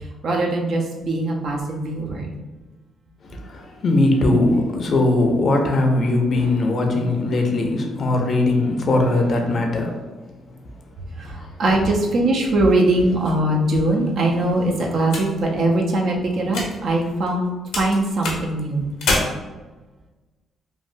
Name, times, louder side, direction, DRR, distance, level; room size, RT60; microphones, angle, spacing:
voice 1, 0.2-2.3 11.2-17.5 17.7-18.9, right 1 dB, 60° right, 0 dB, 0.6 m, -21 dB
voice 2, 3.2-9.9 11.2-11.5, left 2 dB, 50° left, 2 dB, 0.5 m, -20 dB
sound 1, 12.4-17.5 17.7-19.2, left 3 dB, 85° left, 0.8 m, -30 dB
3.2 x 2.2 x 2.6 m, 1.2 s
cardioid pair, 90°, 0 cm